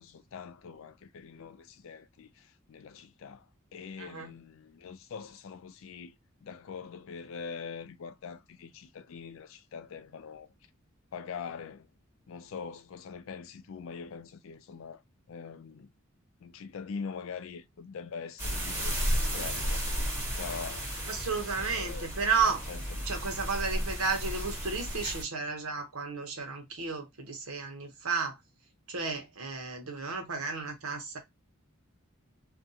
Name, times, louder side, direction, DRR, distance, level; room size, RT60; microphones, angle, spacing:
voice 1, 0.0-10.5 11.1-11.9 12.3-15.0 15.3-15.9 16.4-21.0 21.6-22.1 22.4-22.8 25.0-25.1, left 6 dB, 70° left, 0.4 m, -43 dB
voice 2, 4.0-4.3 21.1-22.7 23.1-28.4 28.9-31.2, right 5 dB, 90° right, 0.9 m, -33 dB
sound 1, 18.4-25.2, equal, 10° right, 1.2 m, -33 dB
2.5 x 2.3 x 2.6 m
head